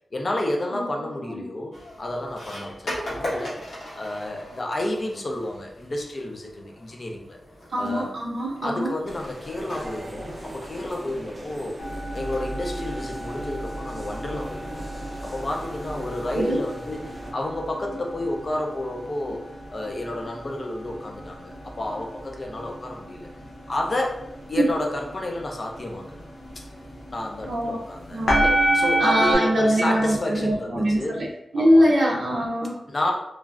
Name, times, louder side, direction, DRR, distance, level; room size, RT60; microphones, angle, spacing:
voice 1, 0.1-3.7 4.0-7.4 7.8-8.1 8.6-11.8 12.1-14.8 15.2-23.3 23.7-24.2 24.5-26.2 26.5-26.7 27.1-28.3 28.7-31.2 31.6-31.9 32.9-33.1, left 1 dB, 35° left, 1 dB, 0.4 m, -30 dB
sound 1, 1.7-16.4, equal, 60° left, 1.0 m, -41 dB
voice 2, 7.7-8.9 16.4-16.6 24.6-24.7 27.5-27.8 28.1-28.5 29.0-31.3 31.5-32.8, equal, 85° right, -6 dB, 0.5 m, -22 dB
sound 2, 9.1-17.3, right 1 dB, 25° right, 0.6 m, -40 dB
sound 3, 11.8-29.3, right 1 dB, 85° left, 0.6 m, -30 dB
3.1 x 2.4 x 2.4 m, 0.82 s
wide cardioid pair, 170°, 0 cm